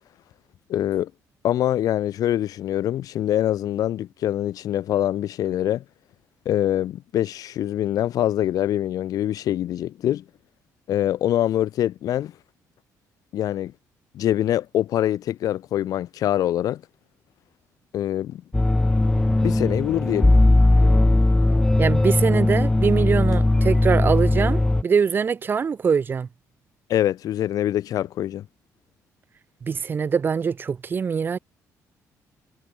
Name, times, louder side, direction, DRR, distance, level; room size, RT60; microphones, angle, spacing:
voice 1, 0.7-1.1 1.4-5.8 6.5-10.2 10.9-12.3 13.3-13.7 14.1-16.8 17.9-18.4 19.4-20.3 26.9-28.5, left 12 dB, 65° left, 1.7 m, -24 dB
sound 1, 18.5-24.8, left 2 dB, 10° left, 0.6 m, -18 dB
voice 2, 21.8-26.3 29.6-31.4, right 6 dB, 30° right, 0.8 m, -23 dB
cardioid pair, 130°, 7 cm